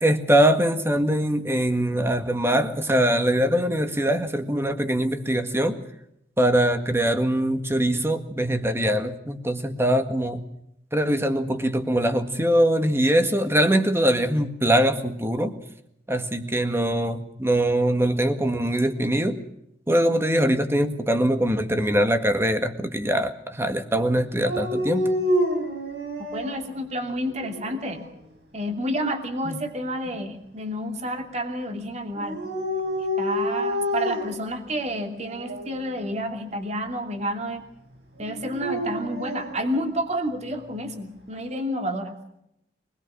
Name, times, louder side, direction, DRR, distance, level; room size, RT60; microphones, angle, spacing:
voice 1, 0.0-5.8 6.4-10.4 10.9-15.5 16.1-19.4 19.9-25.0 29.5-29.6, right 1 dB, 15° right, 7 dB, 1.8 m, -22 dB
Dog, 24.4-26.6 27.3-28.0 32.1-34.5 35.2-35.7 38.3-39.6, equal, 65° right, 6.3 m, -28 dB
voice 2, 26.3-28.0 28.5-32.4 33.2-37.6 38.2-42.2, equal, 40° right, 5 dB, 2.7 m, -30 dB
24.0 x 20.5 x 6.3 m, 0.78 s
head